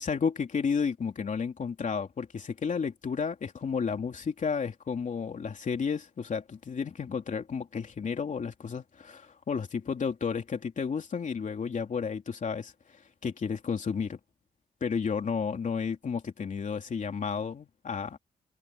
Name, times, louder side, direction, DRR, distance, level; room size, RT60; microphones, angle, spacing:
voice 1, 0.0-12.7 13.2-14.2 14.8-18.2, left 6 dB, 45° left, 3.2 m, -32 dB
wide cardioid pair, 135°, 18 cm